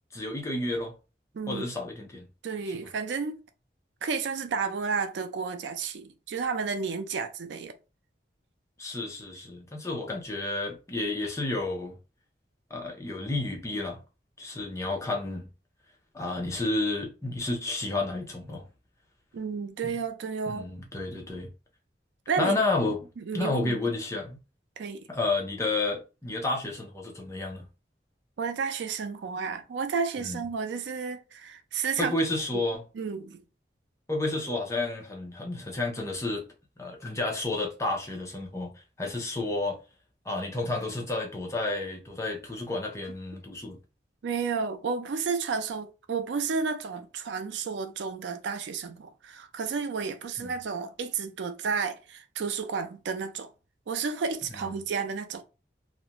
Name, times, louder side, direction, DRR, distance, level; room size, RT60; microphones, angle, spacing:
voice 1, 0.1-0.9 1.5-2.3 8.8-12.0 12.7-14.0 14.4-15.5 16.1-18.6 20.5-21.5 22.4-23.1 23.3-24.4 25.1-27.7 30.2-30.4 32.0-32.8 34.1-36.5 36.8-38.7 39.0-39.8 40.3-43.8 50.4-50.5 54.6-54.7, left 2 dB, 15° left, 0.5 m, -31 dB
voice 2, 2.4-3.4 4.0-7.7 19.3-20.7 22.3-22.6 22.8-23.8 24.8-25.1 28.4-32.2 32.5-32.6 32.9-33.4 44.2-53.5 53.9-55.4, right 5 dB, 80° right, 0.4 m, -32 dB
2.4 x 2.1 x 2.8 m
head